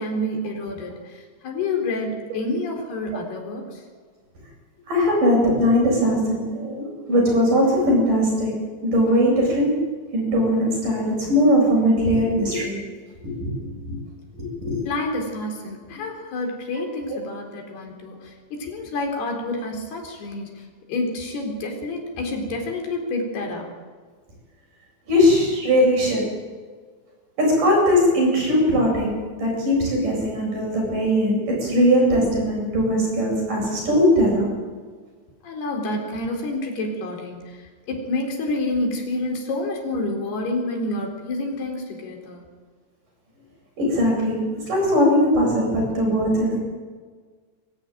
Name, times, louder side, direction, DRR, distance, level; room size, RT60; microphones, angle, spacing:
voice 1, 0.0-3.8 14.9-23.7 35.4-42.4, left 2 dB, 60° left, 2 dB, 5.9 m, -28 dB
voice 2, 4.9-8.5 8.8-9.9 10.1-12.8 13.2-14.0 14.6-14.8 25.1-26.2 27.4-34.5 43.8-46.6, equal, 45° right, -1 dB, 9.5 m, -20 dB
24.0 x 16.5 x 9.2 m, 1.5 s
omnidirectional pair, 5.3 m